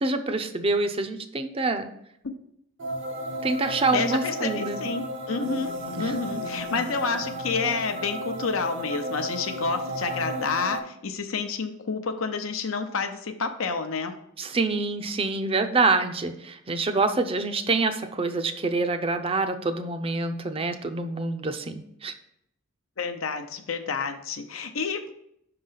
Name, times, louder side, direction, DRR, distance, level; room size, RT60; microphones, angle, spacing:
voice 1, 0.0-1.9 3.4-4.8 6.0-6.1 14.4-22.1, right 3 dB, 30° right, 8 dB, 0.5 m, -26 dB
sound 1, 2.8-10.8, right 1 dB, 60° right, 0.8 m, -33 dB
voice 2, 3.9-14.1 23.0-25.1, left 5 dB, 80° left, 7 dB, 0.7 m, -29 dB
5.6 x 3.9 x 5.6 m, 0.73 s
head